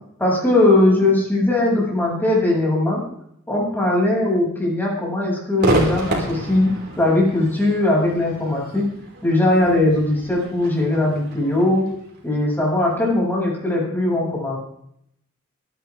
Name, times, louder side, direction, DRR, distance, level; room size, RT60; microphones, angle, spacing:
voice 1, 0.2-3.0 3.5-8.8 9.2-11.8 12.2-14.6, left 2 dB, 10° left, -4 dB, 7.7 m, -19 dB
Crowd / Fireworks, 5.6-12.9, right 2 dB, 50° right, 5.9 m, -29 dB
26.0 x 12.5 x 3.8 m, 0.72 s
head